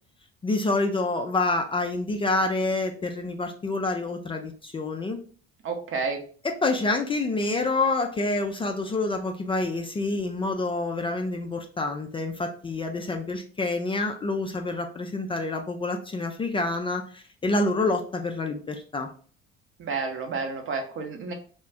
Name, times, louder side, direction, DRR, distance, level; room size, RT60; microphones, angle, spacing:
voice 1, 0.4-5.2 6.4-19.1, left 2 dB, 15° left, 4 dB, 0.3 m, -27 dB
voice 2, 5.6-6.2 19.8-21.3, right 4 dB, 40° right, 4 dB, 0.8 m, -30 dB
2.4 x 2.1 x 3.4 m, 0.43 s
hypercardioid pair, 65°, 31 cm